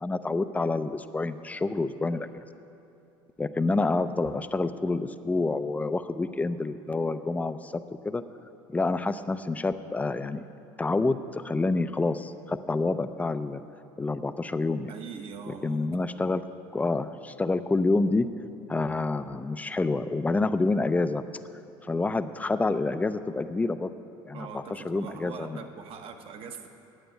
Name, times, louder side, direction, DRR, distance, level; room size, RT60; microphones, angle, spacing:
voice 1, 0.0-2.3 3.4-7.7 8.0-8.2 8.7-10.4 10.8-13.6 14.0-14.9 15.5-16.4 16.7-18.3 18.7-21.2 21.8-23.9 24.3-25.6, left 3 dB, 15° left, 11 dB, 0.5 m, -28 dB
voice 2, 14.9-16.0 24.3-26.7, right 6 dB, 50° right, 6 dB, 1.1 m, -42 dB
9.4 x 7.8 x 8.9 m, 2.8 s
supercardioid pair, 100°, 12 cm